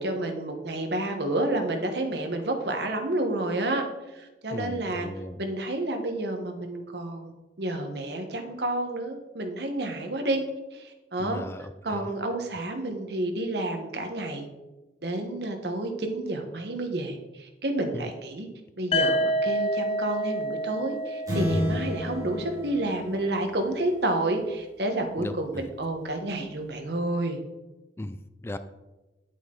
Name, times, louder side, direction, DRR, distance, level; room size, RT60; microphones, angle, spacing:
voice 1, 0.0-3.9 4.1-5.1 5.4-10.4 10.7-11.4 11.8-14.5 15.0-18.5 18.8-27.4, right 1 dB, 65° right, 4 dB, 1.3 m, -30 dB
voice 2, 4.5-5.4 11.2-12.0 17.9-18.1 25.2-25.6 28.0-28.6, left 1 dB, 15° left, 11 dB, 0.3 m, -37 dB
sound 1, 18.9-22.8, equal, 35° left, 0.7 m, -28 dB
sound 2, 21.3-23.9, left 1 dB, 20° right, 3.1 m, -31 dB
9.6 x 8.2 x 3.9 m, 1.1 s
head